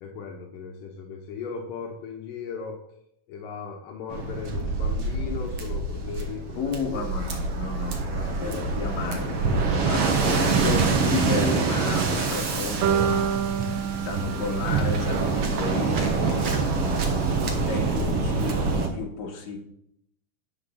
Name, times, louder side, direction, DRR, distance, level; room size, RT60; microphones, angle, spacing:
voice 1, 0.0-2.8 3.3-7.2 8.0-10.3, left 5 dB, 75° left, 1 dB, 2.7 m, -38 dB
Waves surf, 4.1-18.9, right 4 dB, 50° right, 2.0 m, -26 dB
voice 2, 6.5-8.0 8.4-19.6, left 4 dB, 60° left, 0 dB, 3.1 m, -33 dB
sound 1, 12.8-16.9, right 9 dB, 80° right, 2.5 m, -29 dB
9.7 x 6.1 x 7.1 m, 0.75 s
omnidirectional pair, 4.0 m